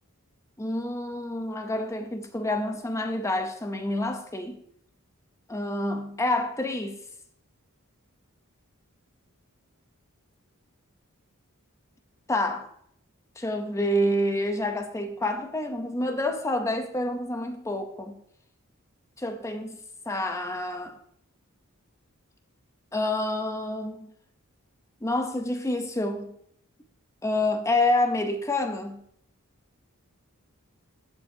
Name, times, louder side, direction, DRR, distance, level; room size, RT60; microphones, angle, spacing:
voice 1, 0.6-4.6 5.5-7.0 12.3-12.7 13.4-18.2 19.2-19.8 20.1-21.0 22.9-24.1 25.0-26.4 27.2-29.0, left 1 dB, 15° left, 0.7 m, -28 dB
15.0 x 5.1 x 2.7 m
head